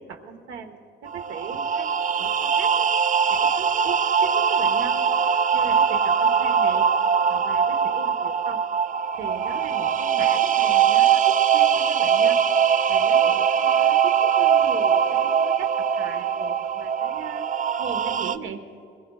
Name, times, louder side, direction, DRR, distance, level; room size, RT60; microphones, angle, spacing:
voice 1, 0.0-2.9 3.3-5.1 5.5-6.9 7.3-8.6 9.1-12.5 12.8-17.5 17.8-18.7, right 6 dB, 85° right, 5 dB, 1.3 m, -38 dB
sound 1, 1.1-18.4, right 7 dB, 40° right, 0.4 m, -21 dB
23.0 x 21.5 x 2.4 m, 2.6 s
cardioid pair, 90°, 20 cm